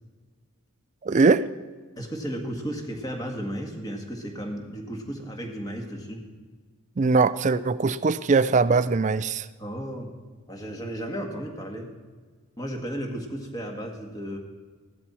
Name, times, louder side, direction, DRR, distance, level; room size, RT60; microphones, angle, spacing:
voice 1, 1.0-1.5 7.0-9.5, right 4 dB, 35° right, 15 dB, 0.4 m, -21 dB
voice 2, 2.0-6.2 9.6-10.1 10.5-11.9 12.6-14.4, equal, 15° left, 2 dB, 1.7 m, -34 dB
16.0 x 12.0 x 4.3 m, 1.4 s
head